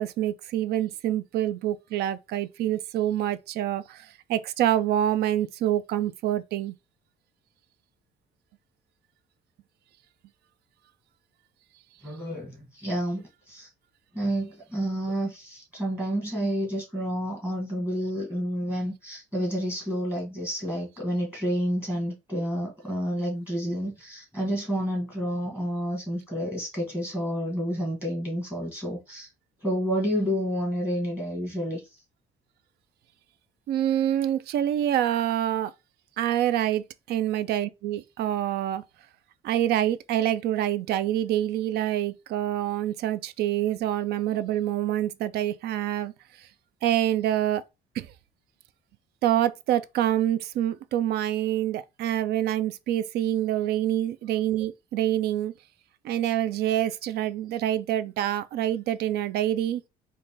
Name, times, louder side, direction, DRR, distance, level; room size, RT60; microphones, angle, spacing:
voice 1, 0.0-6.7 33.7-35.7 36.2-38.8 39.4-46.1 46.4-46.5 46.8-47.6 48.0-48.1 49.2-55.5 56.0-59.8, right 12 dB, 70° right, 0.4 m, -26 dB
voice 2, 12.0-13.7 14.1-29.3 29.6-31.8, equal, 10° right, 1.8 m, -29 dB
4.0 x 2.5 x 3.7 m
cardioid pair, 110°, 17 cm